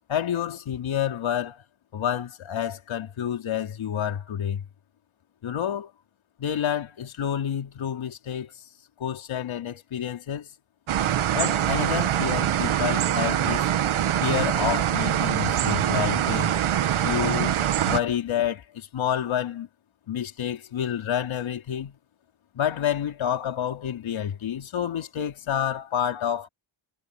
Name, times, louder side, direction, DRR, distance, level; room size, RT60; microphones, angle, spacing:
voice 1, 0.1-1.6 1.9-4.7 5.4-5.9 6.4-8.5 9.0-10.5 11.3-13.6 14.2-16.5 17.0-19.7 20.1-22.0 22.5-26.5, left 9 dB, 70° left, 3.5 m, -29 dB
sound 1, 10.9-18.0, right 10 dB, 75° right, 1.9 m, -24 dB
cardioid pair, 100°, 50 cm